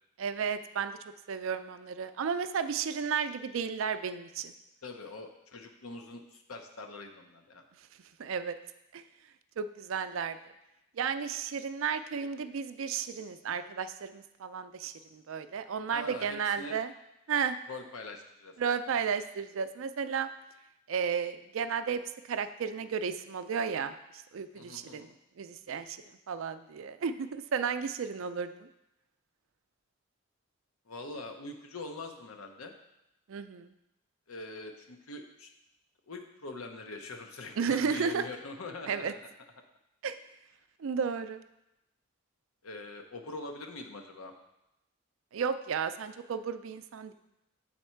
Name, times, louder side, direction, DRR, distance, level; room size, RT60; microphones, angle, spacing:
voice 1, 0.2-1.0 1.3-4.5 8.2-8.6 8.9-9.0 9.6-10.4 11.0-16.9 17.3-17.6 18.6-20.3 20.9-22.0 22.3-23.9 24.3-25.1 25.4-26.0 26.3-28.7 33.3-33.7 37.6-38.2 38.9-39.1 40.0-40.1 40.8-41.4 45.3-47.1, right 6 dB, 70° right, 10 dB, 0.4 m, -33 dB
voice 2, 4.8-7.6 15.9-16.8 17.7-18.5 24.5-25.1 30.9-32.7 34.3-35.5 36.1-39.2 42.6-44.3, left 2 dB, 85° left, 5 dB, 0.8 m, -43 dB
7.2 x 4.3 x 4.4 m, 0.90 s
head